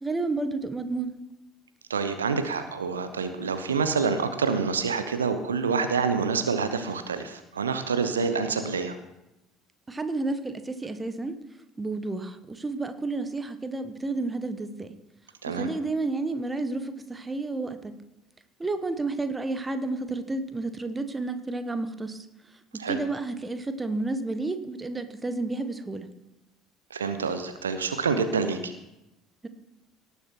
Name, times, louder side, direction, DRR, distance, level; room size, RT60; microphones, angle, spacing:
voice 1, 0.0-1.1 9.9-11.3 11.8-14.9 15.5-18.0 18.6-22.3 22.7-26.1, right 3 dB, 15° right, 10 dB, 1.1 m, -31 dB
voice 2, 1.9-9.0 15.4-15.7 22.8-23.0 26.9-28.7, right 5 dB, 80° right, 9 dB, 0.8 m, -27 dB
18.0 x 7.0 x 4.5 m, 0.92 s
figure-of-eight pair, 60°, 0 cm